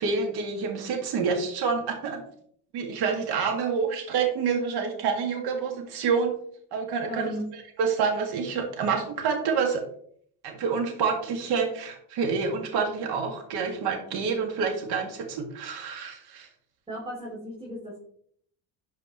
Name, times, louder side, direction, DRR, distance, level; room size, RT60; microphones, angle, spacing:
voice 1, 0.0-2.2 2.7-6.3 6.7-7.3 7.8-9.8 10.4-16.5, right 5 dB, 75° right, 3 dB, 2.1 m, -27 dB
voice 2, 7.1-7.4 16.9-18.0, equal, 15° right, -4 dB, 2.6 m, -35 dB
11.5 x 4.8 x 3.1 m, 0.62 s
supercardioid pair, 90°, 39 cm